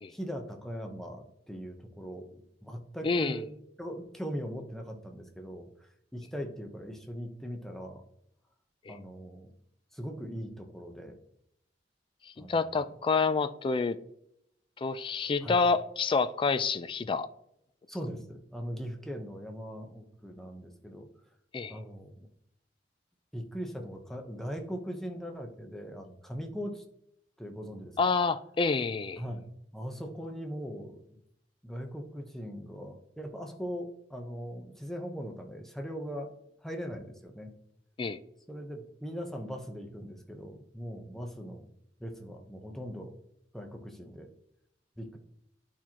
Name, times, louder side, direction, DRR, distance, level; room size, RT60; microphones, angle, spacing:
voice 1, 0.1-3.5 3.8-8.0 8.9-9.5 9.9-11.2 12.4-12.8 15.4-15.6 17.9-21.1 21.7-22.3 23.3-26.8 27.4-28.0 29.2-29.4 29.7-31.0 31.6-36.3 36.6-37.5 38.5-41.7 42.0-43.1 43.5-44.3 45.0-45.2, equal, ahead, 0.8 m, -40 dB
voice 2, 3.0-3.4 8.9-9.0 12.4-14.0 14.8-17.3 21.5-21.8 28.0-29.2 38.0-38.2, left 4 dB, 30° left, 0.3 m, -28 dB
11.0 x 4.4 x 2.9 m
head